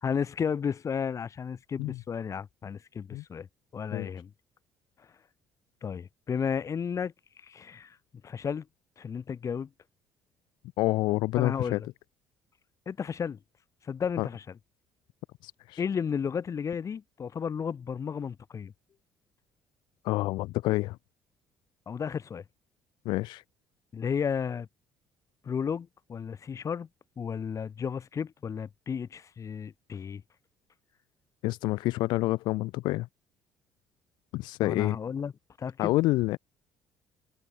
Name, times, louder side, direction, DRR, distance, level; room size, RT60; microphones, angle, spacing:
voice 1, 0.0-3.5 3.7-4.3 5.8-7.1 7.5-8.0 8.2-8.6 9.0-9.7 11.4-11.9 12.9-13.4 13.9-14.4 15.8-18.7 21.9-22.4 23.9-24.7 25.4-26.9 27.2-30.2 34.6-35.3 35.6-35.9, left 7 dB, 40° left, 3.7 m, -33 dB
voice 2, 10.8-11.8 14.2-14.3 15.4-15.8 20.0-21.0 23.0-23.4 31.4-33.1 34.3-35.0 35.8-36.4, left 19 dB, 60° left, 2.4 m, -28 dB
figure-of-eight pair, 50°, 9 cm